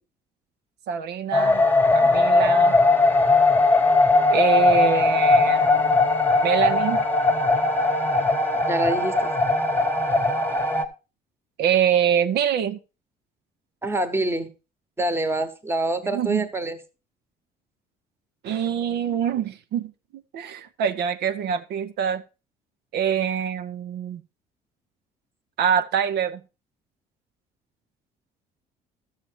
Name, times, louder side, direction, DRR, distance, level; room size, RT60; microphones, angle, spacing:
voice 1, 0.9-1.6 1.9-2.8 4.3-6.0 6.4-7.0 11.6-12.8 16.0-16.5 18.4-22.2 22.9-24.2 25.6-26.4, right 8 dB, 75° right, 0.8 m, -25 dB
sound 1, 1.3-10.8, left 3 dB, 10° left, 1.1 m, -19 dB
voice 2, 8.7-9.3 13.8-14.5 15.0-16.8, right 1 dB, 15° right, 1.2 m, -26 dB
12.5 x 6.6 x 4.5 m
cardioid pair, 110°, 17 cm